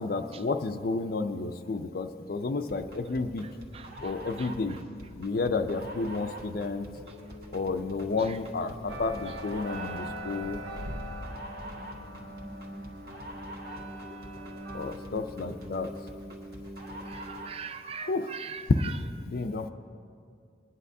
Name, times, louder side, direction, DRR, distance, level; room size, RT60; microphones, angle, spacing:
voice 1, 0.0-3.5 4.0-4.8 5.2-6.9 7.5-10.6 14.7-15.9 18.1-18.3 19.2-19.7, left 3 dB, 55° left, 0.4 m, -31 dB
sound 1, 2.7-17.6, equal, 55° right, 1.4 m, -43 dB
voice 2, 3.7-4.8 8.2-8.4 8.9-9.3 17.0-18.9, right 6 dB, 30° right, 0.4 m, -42 dB
sound 2, 8.9-14.9, right 1 dB, 85° right, 1.1 m, -42 dB
20.5 x 10.0 x 2.7 m
head